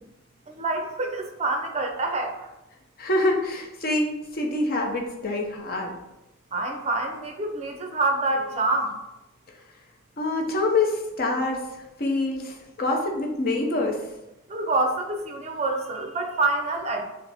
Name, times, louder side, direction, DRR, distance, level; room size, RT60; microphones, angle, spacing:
voice 1, 0.5-2.3 6.5-8.9 14.5-17.0, right 2 dB, 30° right, 4 dB, 0.5 m, -26 dB
voice 2, 3.0-5.9 10.2-11.6 12.0-14.0, left 2 dB, 45° left, 1 dB, 0.7 m, -25 dB
6.2 x 2.1 x 3.4 m, 0.93 s
head